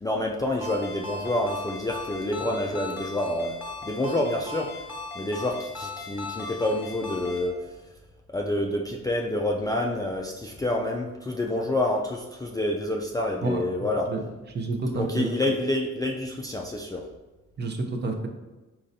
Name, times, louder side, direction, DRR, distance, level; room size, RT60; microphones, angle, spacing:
voice 1, 0.0-3.5 3.8-4.7 5.2-7.5 8.3-14.1 14.9-17.0, left 1 dB, 15° left, 0 dB, 0.3 m, -28 dB
Ringtone, 0.6-7.5, left 2 dB, 5° right, 1.0 m, -38 dB
voice 2, 14.5-15.3 17.6-17.8 18.0-18.3, right 3 dB, 35° right, 4 dB, 0.6 m, -28 dB
4.3 x 3.8 x 2.6 m, 1.1 s
cardioid pair, 90°, 30 cm